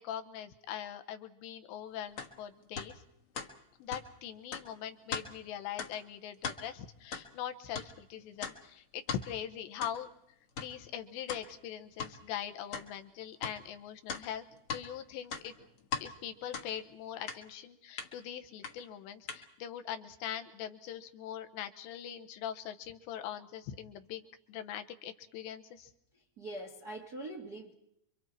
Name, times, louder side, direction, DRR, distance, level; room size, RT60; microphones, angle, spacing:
voice 1, 0.0-3.0 3.8-10.1 10.6-14.4 14.7-15.5 16.0-25.9, left 10 dB, 75° left, 7 dB, 3.2 m, -42 dB
sound 1, 2.2-2.3 2.8-2.9 3.3-3.5 3.9-4.0 4.5-4.7 5.1-5.3 5.8-5.9 6.3-6.6 7.1-7.3 7.7-7.9 8.4-8.6 9.1-9.2 9.8-9.9 10.6-10.7 11.3-11.4 12.0-12.1 12.7-12.9 13.4-13.5 14.1-14.8 15.2-16.1 16.5-16.7 17.3-17.4 18.0-18.1 18.6-18.7 19.3-19.4, left 6 dB, 55° left, 1.6 m, -38 dB
voice 2, 26.1-27.7, right 1 dB, 80° right, 0 dB, 0.8 m, -43 dB
29.0 x 24.5 x 4.6 m, 0.75 s
omnidirectional pair, 5.4 m